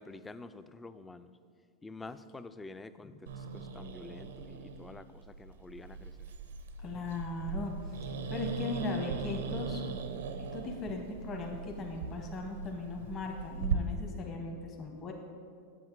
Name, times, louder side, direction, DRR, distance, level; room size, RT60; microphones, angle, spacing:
voice 1, 0.0-1.3 1.8-6.3, left 3 dB, 10° left, 12 dB, 0.3 m, -48 dB
Growling, 3.3-13.8, right 6 dB, 90° right, 0.7 m, -39 dB
voice 2, 6.8-7.7 8.3-9.8 10.5-15.1, left 3 dB, 30° left, 1 dB, 1.0 m, -38 dB
8.0 x 7.6 x 4.6 m, 2.2 s
supercardioid pair, 125°, 0 cm